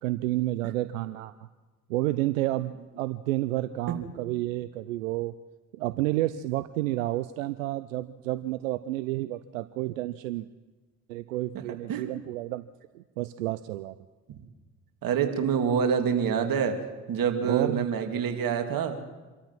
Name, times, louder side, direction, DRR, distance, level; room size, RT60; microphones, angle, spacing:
voice 1, 0.0-1.3 1.9-5.3 5.7-10.5 11.1-12.6 12.9-13.9 17.5-17.9, right 16 dB, 85° right, 14 dB, 0.6 m, -30 dB
voice 2, 15.0-16.8 17.1-19.0, right 7 dB, 60° right, 6 dB, 2.6 m, -26 dB
26.5 x 13.0 x 7.5 m, 1.3 s
hypercardioid pair, 50°, 38 cm